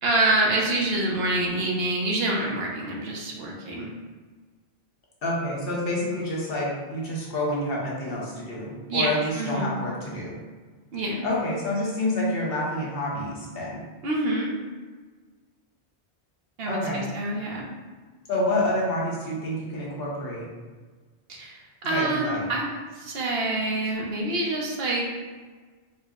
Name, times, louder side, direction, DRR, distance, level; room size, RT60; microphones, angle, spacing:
voice 1, 0.0-3.9 8.9-9.7 10.9-11.2 14.0-14.5 16.6-17.7 21.3-22.7 22.9-25.1, right 2 dB, 65° right, -1 dB, 0.9 m, -26 dB
voice 2, 5.2-10.4 11.2-13.8 16.7-17.1 18.3-20.5 21.9-22.4, left 1 dB, 60° left, -5 dB, 1.0 m, -28 dB
4.1 x 2.0 x 3.5 m, 1.4 s
omnidirectional pair, 1.1 m